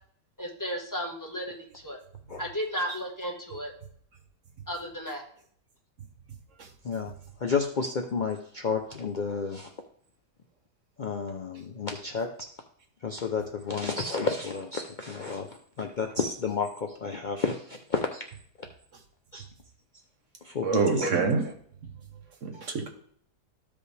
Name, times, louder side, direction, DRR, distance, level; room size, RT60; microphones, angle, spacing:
voice 1, 0.4-1.5 1.8-2.0 2.4-3.7 4.7-5.2, equal, 10° left, -1 dB, 1.2 m, -34 dB
voice 2, 7.4-9.7 11.0-12.3 13.0-15.5 15.8-18.2 19.3-19.4 20.4-21.1, left 5 dB, 70° left, 3 dB, 0.4 m, -31 dB
voice 3, 20.6-21.4 22.4-22.9, right 4 dB, 55° right, 4 dB, 1.2 m, -26 dB
13.5 x 5.1 x 3.3 m, 0.62 s
omnidirectional pair, 1.8 m